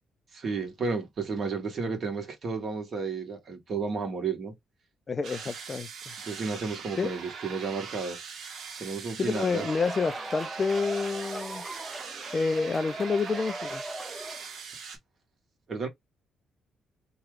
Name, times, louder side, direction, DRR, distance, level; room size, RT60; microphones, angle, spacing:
voice 1, 0.3-4.5 6.3-8.2 8.8-9.7 15.7-15.9, right 4 dB, 50° right, 1.5 m, -32 dB
voice 2, 5.1-6.1 7.0-7.1 9.2-11.6 12.3-13.8, left 4 dB, 35° left, 0.5 m, -29 dB
sound 1, 5.2-15.0, right 6 dB, 65° right, 1.2 m, -41 dB
sound 2, 9.4-14.6, right 2 dB, 20° right, 0.6 m, -39 dB
3.1 x 2.3 x 3.2 m
cardioid pair, 90°, 0 cm